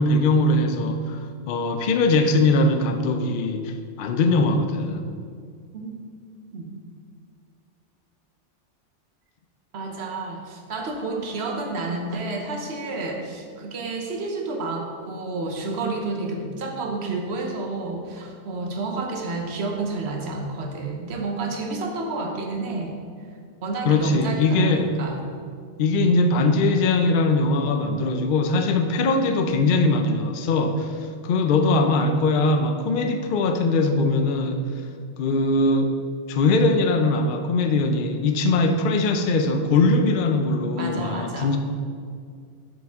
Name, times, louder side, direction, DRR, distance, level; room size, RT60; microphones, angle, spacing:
voice 1, 0.0-5.1 23.9-25.0 25.8-34.6 35.2-36.0 36.3-41.6, left 2 dB, 60° left, 6 dB, 0.6 m, -21 dB
voice 2, 9.7-22.9 23.6-25.2 40.6-41.6, right 3 dB, 65° right, 1 dB, 1.1 m, -30 dB
7.9 x 5.2 x 3.5 m, 2.2 s
omnidirectional pair, 1.2 m